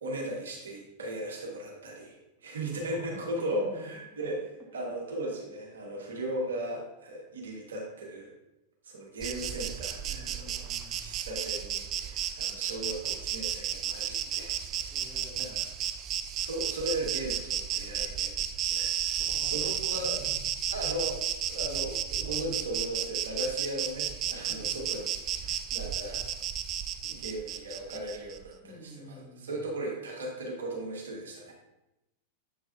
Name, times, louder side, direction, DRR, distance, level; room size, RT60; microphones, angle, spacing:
voice 1, 0.0-4.4 4.7-8.3 8.8-10.7 11.0-15.0 15.4-15.6 16.4-18.4 18.7-20.2 20.7-25.1 25.4-26.3 27.0-31.5, right 1 dB, 65° right, 0 dB, 1.2 m, -37 dB
voice 2, 2.6-3.9 10.0-11.1 14.9-15.6 19.2-20.4 24.4-24.8 28.6-29.6, equal, 5° left, -4 dB, 1.5 m, -48 dB
Insect, 9.2-28.4, right 9 dB, 35° right, 0.3 m, -33 dB
7.4 x 6.1 x 2.5 m, 0.94 s
figure-of-eight pair, 90°, 0 cm